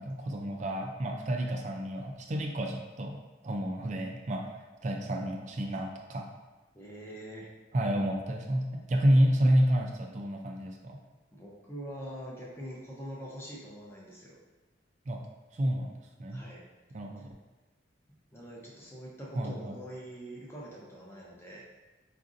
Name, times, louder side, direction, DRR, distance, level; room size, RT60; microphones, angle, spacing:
voice 1, 0.0-3.2 3.4-6.3 7.7-11.0 15.1-15.2 15.5-16.4 16.9-17.4 19.3-19.8, equal, 35° right, 2 dB, 0.3 m, -29 dB
voice 2, 6.7-7.5 11.3-14.4 16.3-16.6 18.3-21.6, equal, 15° left, -5 dB, 0.6 m, -44 dB
5.0 x 2.5 x 2.5 m, 1.1 s
head